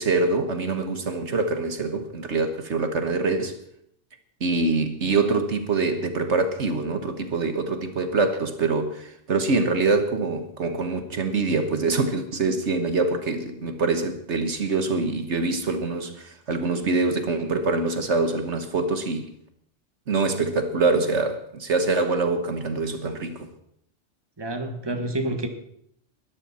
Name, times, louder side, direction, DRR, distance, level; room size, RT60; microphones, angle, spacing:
voice 1, 0.0-3.6 4.4-19.3 20.1-23.5, right 3 dB, 70° right, 1.6 m, -24 dB
voice 2, 24.4-25.5, right 1 dB, 20° right, 1.6 m, -28 dB
20.5 x 13.5 x 4.3 m
omnidirectional pair, 1.2 m